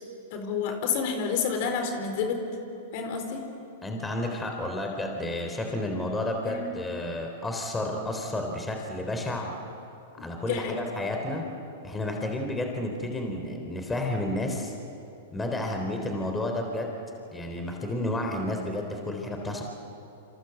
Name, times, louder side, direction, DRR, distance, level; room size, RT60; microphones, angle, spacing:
voice 1, 0.3-2.5 2.9-3.4 6.4-6.7 10.2-10.8 11.0-11.1, left 6 dB, 55° left, 5 dB, 4.4 m, -29 dB
voice 2, 3.8-9.5 10.2-11.4 11.8-14.7 15.3-16.9 17.3-19.6, left 1 dB, 10° left, 2 dB, 3.7 m, -31 dB
27.5 x 26.5 x 7.9 m, 2.8 s
hypercardioid pair, 125°, 0 cm